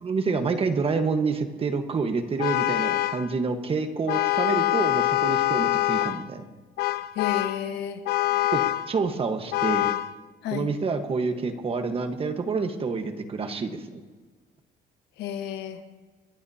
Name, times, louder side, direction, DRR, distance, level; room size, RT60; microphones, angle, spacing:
voice 1, 0.0-6.5 8.5-9.9 10.5-14.0, right 4 dB, 35° right, 7 dB, 1.3 m, -28 dB
Vehicle horn car horn honking, 2.4-3.3 4.1-6.3 6.8-7.6 8.1-8.9 9.5-10.1, left 15 dB, 70° left, 0.5 m, -24 dB
voice 2, 7.1-8.0 10.4-10.7 15.2-15.9, left 9 dB, 90° left, 7 dB, 1.4 m, -31 dB
27.5 x 12.0 x 2.9 m, 1.4 s
cardioid pair, 110°, 17 cm